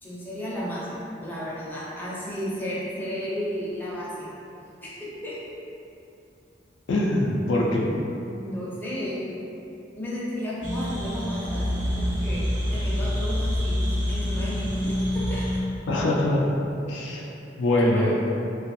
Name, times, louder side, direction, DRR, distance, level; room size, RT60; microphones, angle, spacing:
voice 1, 0.0-4.3 4.8-5.4 8.3-9.4 10.0-15.4 17.9-18.1, equal, 10° left, -8 dB, 0.5 m, -33 dB
voice 2, 6.9-7.9 15.9-16.4 16.9-17.2 17.6-18.1, left 1 dB, 75° left, -2 dB, 0.3 m, -23 dB
sound 1, 10.6-15.6, equal, 45° right, 0.5 m, -26 dB
2.5 x 2.3 x 2.5 m, 2.7 s
head